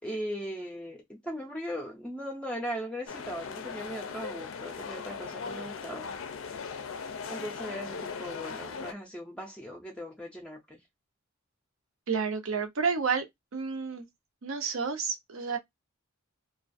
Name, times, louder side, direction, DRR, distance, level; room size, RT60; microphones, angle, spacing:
voice 1, 0.0-6.2 7.3-10.8, equal, 5° left, 0.4 m, -38 dB
sound 1, 3.1-8.9, left 5 dB, 65° left, 0.4 m, -39 dB
voice 2, 12.1-13.3 13.5-14.1 14.4-15.6, right 5 dB, 75° right, 0.7 m, -30 dB
2.4 x 2.2 x 2.5 m
head